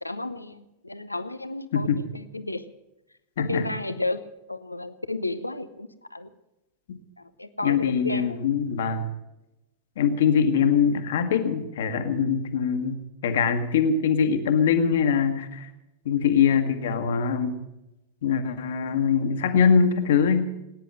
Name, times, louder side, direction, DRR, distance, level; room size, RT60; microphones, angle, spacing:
voice 1, 0.0-2.6 3.4-4.2 4.5-6.3 7.2-8.4, left 2 dB, 85° left, 12 dB, 0.7 m, -32 dB
voice 2, 3.4-3.7 6.9-7.0 7.6-9.1 10.0-15.7 16.0-17.6 18.2-20.5, left 6 dB, 60° left, 8 dB, 1.6 m, -23 dB
19.0 x 10.0 x 7.6 m, 0.96 s
figure-of-eight pair, 90°, 0 cm